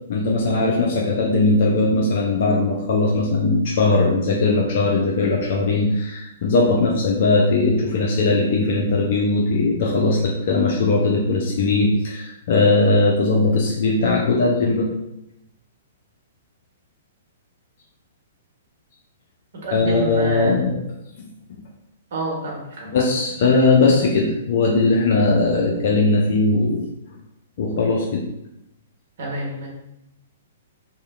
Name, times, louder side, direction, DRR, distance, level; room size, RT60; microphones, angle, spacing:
voice 1, 0.1-14.9 19.7-20.8 21.2-21.6 22.9-26.9 27.6-28.2, left 3 dB, 55° left, -2 dB, 0.4 m, -19 dB
voice 2, 19.6-20.6 22.1-22.9 29.2-29.7, right 2 dB, 60° right, -3 dB, 0.9 m, -28 dB
2.7 x 2.1 x 2.4 m, 0.84 s
figure-of-eight pair, 115°, 0 cm